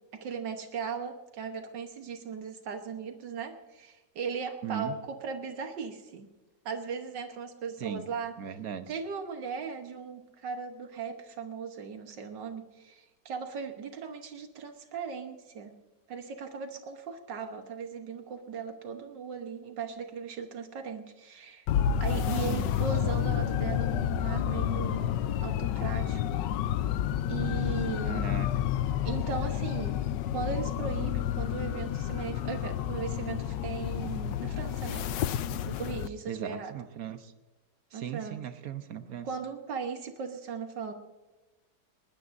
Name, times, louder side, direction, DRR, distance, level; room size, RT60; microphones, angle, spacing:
voice 1, 0.1-6.3 6.7-8.3 8.9-15.7 16.1-21.7 22.0-25.1 25.4-26.2 27.3-28.2 29.0-30.0 30.3-35.1 35.7-36.7 37.9-38.4 39.2-40.9, right 6 dB, 80° right, 6 dB, 1.8 m, -38 dB
voice 2, 4.6-4.9 7.8-8.1 8.4-9.0 22.2-22.8 28.0-28.5 36.3-37.3 37.9-39.3, right 8 dB, 60° right, 10 dB, 1.2 m, -38 dB
sound 1, 21.7-36.1, left 10 dB, 85° left, 1.3 m, -30 dB
20.5 x 19.0 x 2.6 m, 1.2 s
omnidirectional pair, 1.9 m